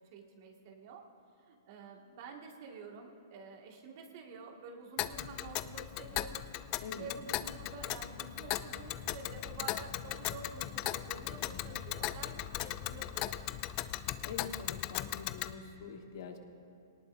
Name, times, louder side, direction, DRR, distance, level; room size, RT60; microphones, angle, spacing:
voice 1, 0.1-1.0 1.4-6.5 6.9-13.4, right 4 dB, 50° right, 1 dB, 2.0 m, -49 dB
Tick, 5.0-15.5, left 15 dB, 35° left, 0.4 m, -38 dB
sound 1, 9.1-15.5, left 1 dB, 15° left, 2.1 m, -55 dB
voice 2, 11.3-11.7 14.2-16.4, left 5 dB, 60° left, 4 dB, 1.3 m, -45 dB
19.0 x 18.5 x 2.7 m, 2.5 s
hypercardioid pair, 135°, 2 cm